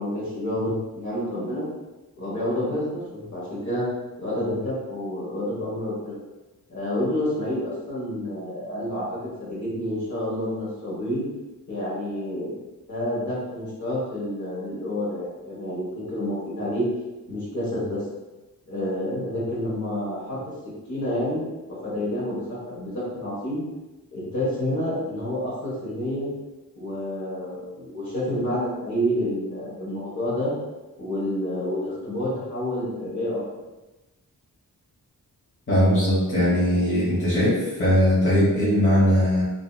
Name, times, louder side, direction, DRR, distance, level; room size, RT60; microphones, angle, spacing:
voice 1, 0.0-1.7 2.2-3.9 4.2-6.2 6.7-11.2 11.7-12.5 12.9-16.9 17.3-18.0 18.7-20.4 20.9-23.6 24.1-26.3 26.8-30.5 31.0-33.5, left 1 dB, 50° left, -7 dB, 1.2 m, -29 dB
voice 2, 35.7-39.4, equal, 35° left, -9 dB, 0.9 m, -20 dB
2.8 x 2.6 x 2.2 m, 1.1 s
wide cardioid pair, 125°, 37 cm